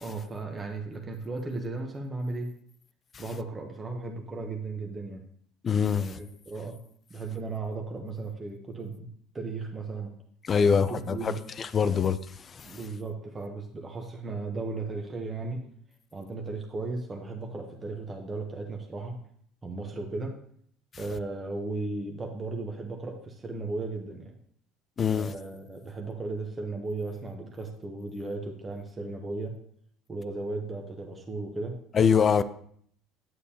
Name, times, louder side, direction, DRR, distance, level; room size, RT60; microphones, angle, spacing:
voice 1, 0.0-2.5 3.2-5.2 5.9-6.8 7.1-9.1 9.3-10.1 10.6-11.4 11.9-12.0 12.6-15.7 16.1-19.2 19.6-20.4 21.0-24.3 25.1-29.6 30.1-31.8, right 3 dB, 20° right, 0.9 m, -36 dB
voice 2, 5.6-6.1 10.5-11.3 11.6-12.2 25.0-25.3 32.0-32.4, left 6 dB, 30° left, 0.4 m, -23 dB
9.4 x 8.4 x 2.8 m
cardioid pair, 140°, 0 cm